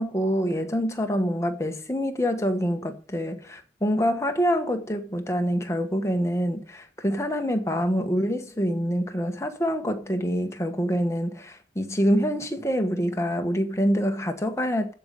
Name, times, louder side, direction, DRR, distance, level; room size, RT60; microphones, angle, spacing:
voice 1, 0.0-14.9, equal, 15° left, 1.2 m, -26 dB
15.0 x 5.4 x 6.6 m
head